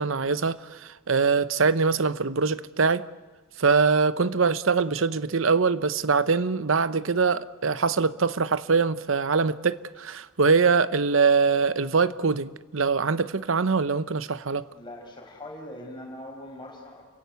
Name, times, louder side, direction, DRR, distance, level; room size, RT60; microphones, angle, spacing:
voice 1, 0.0-3.0 3.6-14.7, right 5 dB, 70° right, 0.8 m, -23 dB
voice 2, 14.7-17.0, left 1 dB, 25° left, 5.5 m, -41 dB
30.0 x 17.5 x 8.2 m
head